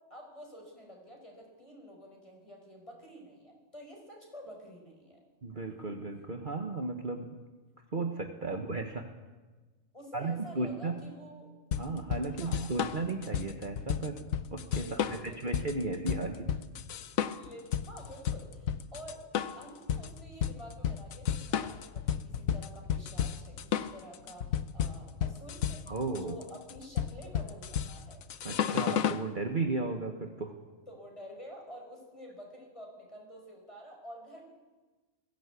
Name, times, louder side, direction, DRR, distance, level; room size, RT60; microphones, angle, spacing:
voice 1, 0.1-5.2 8.4-8.6 9.9-11.5 12.3-12.7 14.8-15.6 17.3-19.3 19.6-25.8 26.1-28.2 30.9-34.4, equal, 25° left, 1 dB, 5.5 m, -49 dB
voice 2, 5.4-7.4 7.9-9.1 10.1-11.1 11.8-14.2 14.5-16.5 25.9-26.4 28.4-30.5, right 3 dB, 40° right, 4 dB, 1.5 m, -35 dB
sound 1, 11.7-29.3, left 9 dB, 85° left, 1.3 m, -33 dB
21.0 x 16.5 x 8.4 m, 1.2 s
omnidirectional pair, 1.4 m